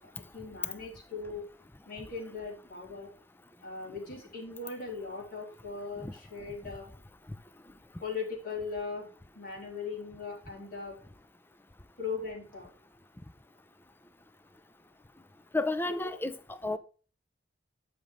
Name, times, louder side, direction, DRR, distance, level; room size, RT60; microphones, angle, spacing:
voice 1, 0.3-1.5 1.9-3.1 3.6-6.9 8.0-9.1 9.3-11.0 12.0-12.7, left 4 dB, 50° left, 4.0 m, -39 dB
voice 2, 15.5-16.8, left 2 dB, 10° left, 0.5 m, -32 dB
13.0 x 5.2 x 3.2 m
head